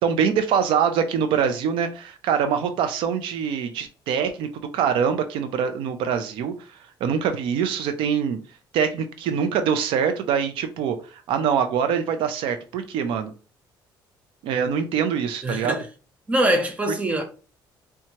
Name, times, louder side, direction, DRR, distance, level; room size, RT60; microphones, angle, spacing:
voice 1, 0.0-8.4 8.7-13.3 14.4-15.8, right 7 dB, 85° right, 0.6 m, -24 dB
voice 2, 15.4-15.9 16.3-17.2, right 1 dB, 15° right, 0.7 m, -23 dB
4.4 x 2.3 x 2.8 m
cardioid pair, 140°, 9 cm